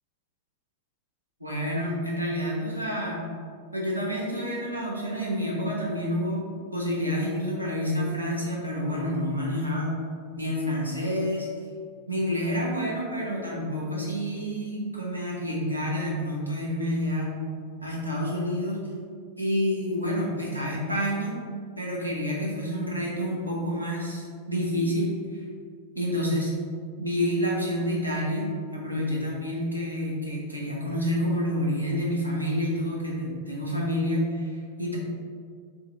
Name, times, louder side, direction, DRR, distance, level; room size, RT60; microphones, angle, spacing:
voice 1, 1.4-3.2 3.7-9.9 10.4-11.5 12.1-17.4 17.8-18.8 19.4-21.4 21.8-25.4 25.9-26.6 27.0-35.0, equal, 85° right, -4 dB, 0.9 m, -28 dB
3.7 x 3.5 x 3.3 m, 2.1 s
figure-of-eight pair, 90°, 0 cm